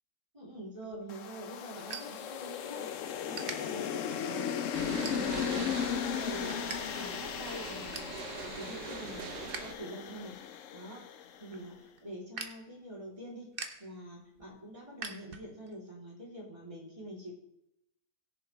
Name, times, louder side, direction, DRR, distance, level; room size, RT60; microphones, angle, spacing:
voice 1, 0.3-2.9 3.3-4.5 4.8-10.3 10.7-13.5 13.8-17.3, equal, 20° right, -5 dB, 3.6 m, -45 dB
sound 1, 0.8-2.8 3.3-3.6 4.1-4.4 5.0-5.6 6.0-6.8 7.1-7.2 7.5-8.2 8.6-9.7 10.0-15.8, right 4 dB, 40° right, 1.1 m, -45 dB
sound 2, 1.1-11.4, left 8 dB, 65° left, 0.9 m, -36 dB
sound 3, 4.7-9.7, right 8 dB, 85° right, 1.3 m, -43 dB
20.5 x 7.1 x 3.4 m, 0.81 s
omnidirectional pair, 1.7 m